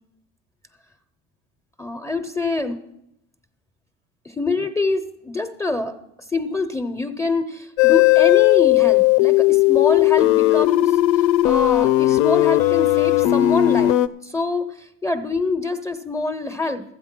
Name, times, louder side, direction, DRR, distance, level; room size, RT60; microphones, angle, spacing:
voice 1, 1.8-2.8 4.3-5.9 6.3-13.9 14.2-16.8, left 3 dB, 10° left, 9 dB, 0.5 m, -25 dB
sound 1, 7.8-14.1, left 16 dB, 85° left, 0.5 m, -16 dB
13.5 x 8.0 x 5.9 m, 0.82 s
cardioid pair, 145°, 30 cm